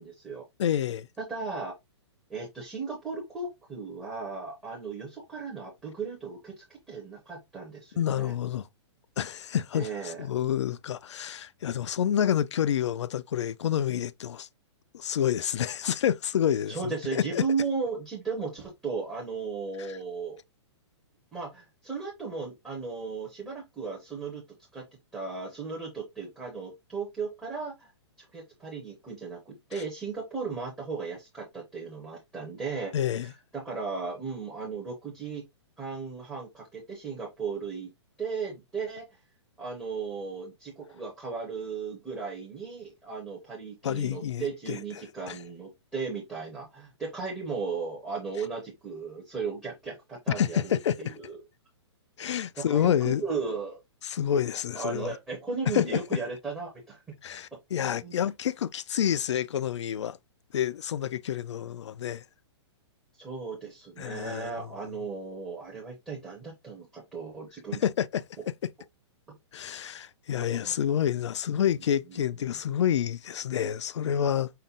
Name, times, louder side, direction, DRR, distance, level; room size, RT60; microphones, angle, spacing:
voice 1, 0.0-0.4 1.2-1.7 2.3-8.3 9.7-10.2 16.7-20.4 21.3-24.4 24.7-24.9 25.1-27.9 28.3-35.4 35.8-37.9 38.2-39.1 39.6-51.4 52.6-53.8 54.7-57.1 57.7-58.2 63.1-67.8 69.3-69.4 70.5-70.7 72.1-72.6, right 4 dB, 5° right, 0.6 m, -36 dB
voice 2, 0.6-1.1 8.0-8.7 9.2-14.5 14.9-17.4 32.9-33.3 43.8-44.8 45.3-45.4 50.4-51.1 52.2-53.2 54.0-55.1 55.7-56.0 57.2-60.2 60.5-62.2 64.0-64.5 67.8-68.2 69.5-74.5, left 9 dB, 80° left, 0.4 m, -28 dB
5.6 x 2.1 x 3.7 m
hypercardioid pair, 180°, 15 cm